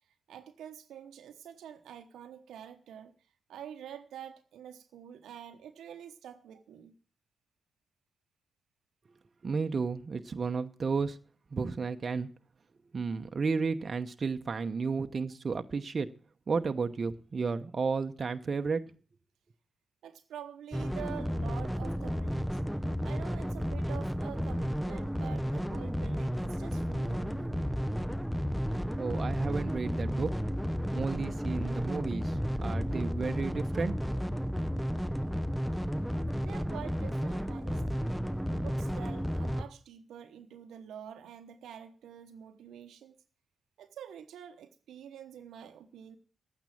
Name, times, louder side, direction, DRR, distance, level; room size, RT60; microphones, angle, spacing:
voice 1, 0.3-3.1 3.5-6.9 20.0-22.6 23.0-27.7 36.4-38.1 38.5-43.2 43.8-46.2, right 9 dB, 85° right, 1.0 m, -47 dB
voice 2, 9.4-11.2 11.5-12.3 12.9-16.1 16.5-18.8 29.0-30.3 30.9-34.0, right 4 dB, 55° right, 0.9 m, -32 dB
sound 1, 20.7-39.6, equal, ahead, 0.9 m, -32 dB
11.0 x 9.0 x 7.2 m
supercardioid pair, 45°, 0 cm